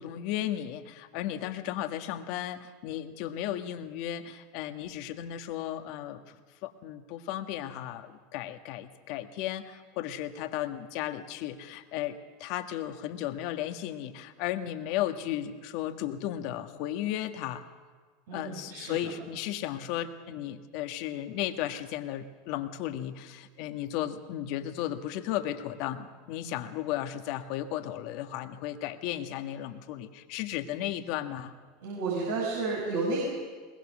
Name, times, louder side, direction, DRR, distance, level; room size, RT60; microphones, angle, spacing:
voice 1, 0.0-17.6 18.3-31.5, left 12 dB, 60° left, 7 dB, 1.6 m, -35 dB
voice 2, 18.3-19.1 31.8-33.2, right 3 dB, 75° right, -4 dB, 6.0 m, -31 dB
21.5 x 21.0 x 6.3 m, 1.5 s
hypercardioid pair, 90°, 0 cm